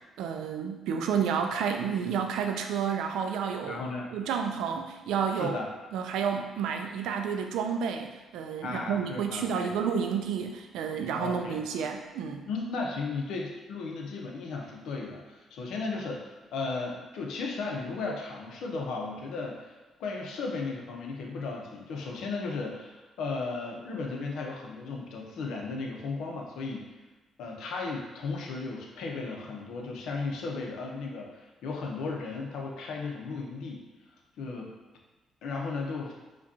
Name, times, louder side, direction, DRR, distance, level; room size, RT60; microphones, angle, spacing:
voice 1, 0.2-3.8 4.1-5.6 5.9-12.5, right 7 dB, 90° right, 5 dB, 0.4 m, -30 dB
voice 2, 3.7-4.1 5.3-5.7 8.6-9.7 11.2-11.6 12.4-26.9 27.4-33.9 34.4-34.7 35.4-36.1, left 3 dB, 80° left, 0 dB, 0.6 m, -35 dB
4.8 x 2.3 x 2.7 m, 1.2 s
cardioid pair, 90°, 0 cm